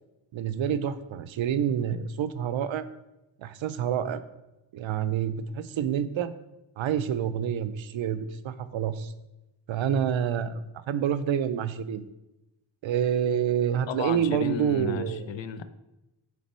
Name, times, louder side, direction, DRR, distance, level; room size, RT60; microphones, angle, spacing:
voice 1, 0.3-2.9 3.4-4.2 4.7-6.3 6.8-9.1 9.7-12.0 12.8-15.3, right 8 dB, 85° right, 13 dB, 0.6 m, -28 dB
voice 2, 13.9-15.6, left 7 dB, 75° left, 11 dB, 0.6 m, -33 dB
8.5 x 3.3 x 4.3 m, 0.95 s
wide cardioid pair, 150°, 45 cm